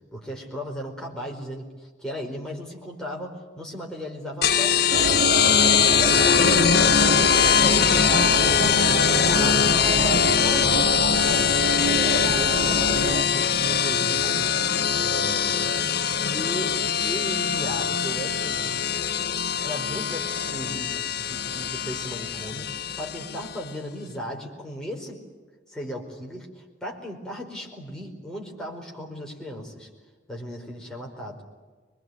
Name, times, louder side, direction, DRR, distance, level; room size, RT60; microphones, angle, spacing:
voice 1, 0.0-5.1 5.5-6.5 7.3-10.9 11.3-11.5 11.8-14.6 15.0-15.9 16.2-16.7 17.0-18.7 19.6-25.2 25.7-29.9 30.3-31.4, equal, 5° left, -1 dB, 4.7 m, -36 dB
sound 1, 4.4-23.6, left 7 dB, 55° left, 0.9 m, -22 dB
sound 2, 4.9-13.2, right 2 dB, 80° right, 2.2 m, -28 dB
25.5 x 22.0 x 9.4 m, 1.4 s
head